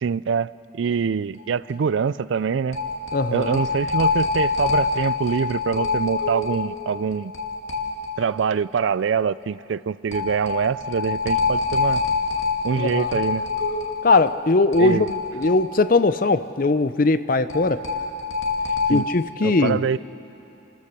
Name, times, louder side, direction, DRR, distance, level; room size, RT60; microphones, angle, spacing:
voice 1, 0.0-2.8 3.3-7.3 8.2-12.0 12.6-13.5 14.8-15.1 18.9-19.1 19.4-20.0, right 6 dB, 75° right, 19 dB, 0.4 m, -24 dB
sound 1, 1.4-1.5 1.7-1.8 2.7-8.5 8.8-8.9 10.1-16.2 16.5-16.6 17.5-19.0, left 4 dB, 90° left, 2.3 m, -25 dB
voice 2, 3.1-3.6 12.8-13.1 14.0-15.1 15.3-17.8 18.9-19.8, left 3 dB, 45° left, 13 dB, 0.6 m, -20 dB
28.0 x 14.0 x 6.8 m, 2.8 s
head